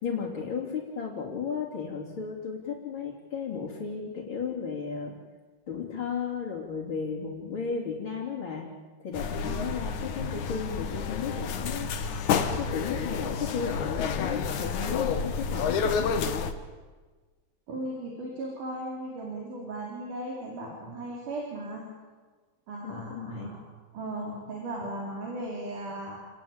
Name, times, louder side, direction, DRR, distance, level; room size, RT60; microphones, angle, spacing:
voice 1, 0.0-5.1 5.7-8.7 9.0-11.9 12.6-16.4 22.8-23.5, left 6 dB, 40° left, -6 dB, 3.8 m, -34 dB
sound 1, 9.1-16.5, left 6 dB, 70° left, 2.8 m, -30 dB
voice 2, 9.4-9.8 17.7-21.9 22.7-23.6 23.9-26.2, right 1 dB, 80° right, -1 dB, 5.4 m, -37 dB
29.5 x 18.5 x 8.9 m, 1.4 s
omnidirectional pair, 3.5 m